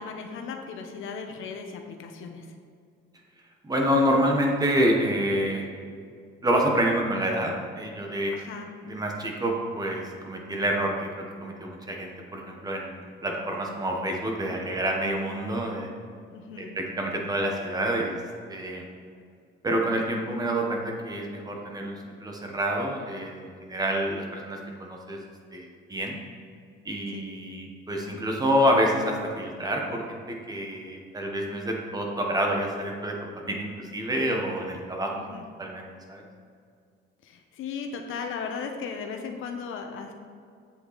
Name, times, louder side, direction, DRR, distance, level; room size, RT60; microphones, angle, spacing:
voice 1, 0.0-2.5 8.3-8.7 16.3-16.7 19.8-19.9 27.1-27.2 35.1-35.4 37.2-40.1, left 5 dB, 75° left, 4 dB, 1.1 m, -37 dB
voice 2, 3.6-5.7 6.4-8.4 8.8-15.9 16.6-18.2 18.5-18.8 19.6-25.2 25.5-26.2 26.8-33.2 33.5-35.1 35.6-36.2, equal, 20° right, 0 dB, 1.3 m, -28 dB
8.6 x 7.8 x 4.2 m, 2.2 s
cardioid pair, 140°, 21 cm